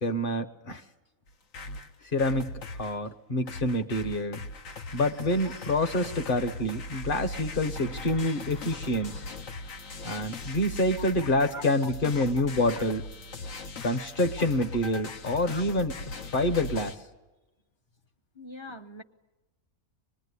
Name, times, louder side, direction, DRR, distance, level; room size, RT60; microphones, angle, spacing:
voice 1, 0.0-0.8 2.1-2.5 2.8-4.4 4.9-9.2 10.0-13.0 13.8-15.9 16.2-17.0, left 1 dB, 40° left, 9 dB, 1.1 m, -27 dB
sound 1, 1.3-3.0 3.5-17.0, left 2 dB, 70° left, 1.4 m, -39 dB
voice 2, 18.3-19.0, left 1 dB, 25° left, 8 dB, 0.8 m, -42 dB
24.5 x 21.0 x 9.7 m, 1.1 s
omnidirectional pair, 1.4 m